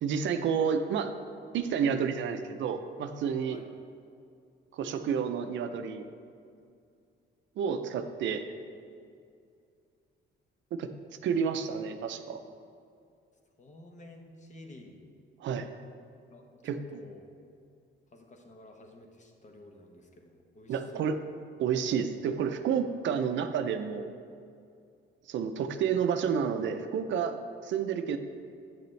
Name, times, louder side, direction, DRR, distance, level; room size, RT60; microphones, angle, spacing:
voice 1, 0.0-1.1 1.5-3.6 4.7-6.1 7.6-8.4 10.7-10.9 11.2-12.4 15.4-15.7 16.6-16.8 20.7-21.2 21.6-24.1 25.3-28.2, right 7 dB, 70° right, 8 dB, 0.5 m, -30 dB
voice 2, 11.6-12.0 13.6-15.0 16.3-17.3 18.1-21.1, left 1 dB, 40° left, 3 dB, 1.0 m, -52 dB
7.7 x 6.7 x 3.2 m, 2.3 s
cardioid pair, 90°, 20 cm